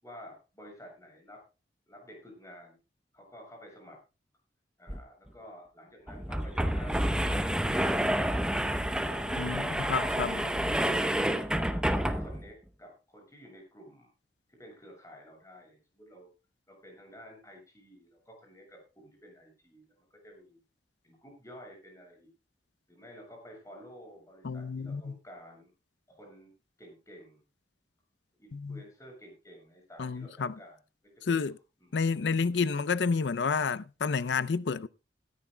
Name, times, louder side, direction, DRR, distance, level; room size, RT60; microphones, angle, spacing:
voice 1, 0.0-1.4 1.9-2.8 3.1-4.0 4.8-7.6 8.5-11.2 11.9-14.1 14.5-16.3 16.7-20.6 21.0-22.3 22.9-25.7 26.1-26.5 26.8-27.4 28.4-31.4 31.8-32.8, equal, 20° left, 7.2 m, -51 dB
sound 1, 4.9-5.0 5.3-5.4 6.1-12.5, right 1 dB, 5° right, 0.8 m, -29 dB
voice 2, 9.4-10.3 24.4-25.2 28.5-28.8 30.0-30.6 31.2-31.5 31.9-34.9, left 5 dB, 90° left, 0.5 m, -30 dB
18.5 x 13.5 x 2.2 m
head